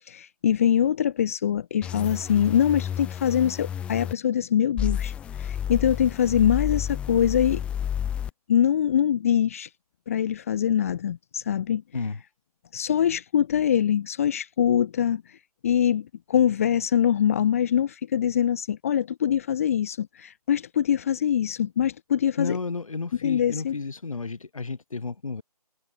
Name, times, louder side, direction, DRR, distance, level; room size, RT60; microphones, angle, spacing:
voice 1, 0.1-7.6 8.5-9.7 10.1-11.8 12.7-15.4 15.6-22.6 23.2-23.8, left 9 dB, 20° left, 1.0 m, -23 dB
sound 1, 1.8-4.1 4.8-8.3, left 9 dB, 5° left, 1.5 m, -31 dB
voice 2, 22.4-25.4, left 4 dB, 55° left, 7.8 m, -32 dB
figure-of-eight pair, 155°, 20 cm